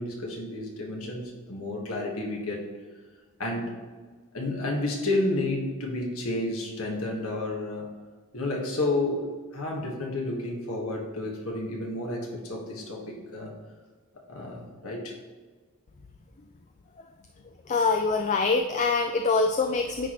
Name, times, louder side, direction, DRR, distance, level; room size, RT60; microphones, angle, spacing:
voice 1, 0.0-2.6 3.4-3.8 4.3-7.9 8.3-13.5 14.3-15.2, left 2 dB, 75° left, -1 dB, 1.5 m, -31 dB
voice 2, 17.7-20.1, left 4 dB, 30° left, 5 dB, 0.3 m, -24 dB
9.8 x 4.3 x 3.0 m, 1.5 s
head